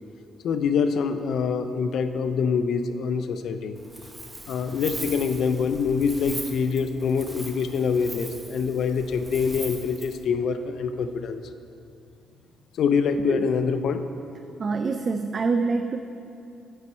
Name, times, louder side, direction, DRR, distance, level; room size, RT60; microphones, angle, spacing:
voice 1, 0.4-3.8 4.5-11.4 12.7-14.1, left 5 dB, 70° left, 9 dB, 0.5 m, -25 dB
Wind, 3.8-10.2, right 1 dB, 15° right, 1.1 m, -39 dB
voice 2, 14.6-16.0, right 4 dB, 40° right, 7 dB, 0.3 m, -25 dB
9.2 x 4.2 x 5.4 m, 2.6 s
cardioid pair, 90°, 0 cm